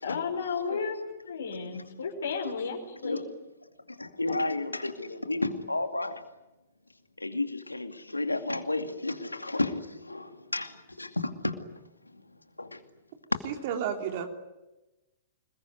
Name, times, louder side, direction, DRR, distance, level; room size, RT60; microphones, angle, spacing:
voice 1, 0.0-3.2, left 5 dB, 65° left, 2 dB, 5.4 m, -33 dB
voice 2, 4.0-6.2 7.2-10.7 11.0-11.5 12.6-12.8, left 2 dB, 85° left, 8 dB, 2.4 m, -32 dB
voice 3, 13.4-14.3, right 8 dB, 45° right, 4 dB, 3.3 m, -31 dB
27.5 x 21.5 x 9.5 m, 1.0 s
figure-of-eight pair, 110°, 0 cm